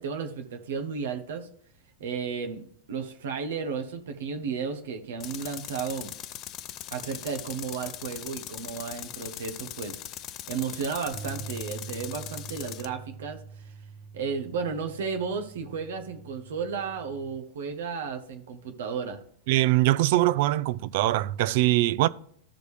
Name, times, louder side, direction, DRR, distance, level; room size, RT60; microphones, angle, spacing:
voice 1, 0.0-1.5 2.0-6.1 6.9-10.0 10.5-13.7 14.1-19.2, right 5 dB, 85° right, 1.1 m, -33 dB
Tools, 5.2-12.9, left 12 dB, 35° left, 0.5 m, -40 dB
sound 1, 11.1-17.4, right 5 dB, 20° right, 1.7 m, -44 dB
voice 2, 19.5-22.1, right 16 dB, 60° right, 0.4 m, -22 dB
14.0 x 5.1 x 3.3 m
supercardioid pair, 140°, 0 cm